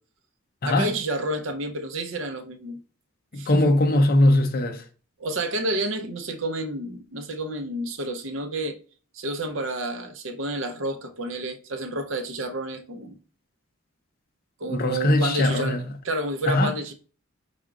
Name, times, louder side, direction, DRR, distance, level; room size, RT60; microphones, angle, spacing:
voice 1, 0.6-2.8 3.4-3.8 5.2-8.8 9.1-13.2 14.6-15.8 16.0-16.9, right 1 dB, 70° right, 0.7 m, -30 dB
voice 2, 3.3-4.8 14.7-15.8 16.5-16.7, left 1 dB, 50° left, 0.6 m, -20 dB
5.0 x 3.6 x 2.4 m
head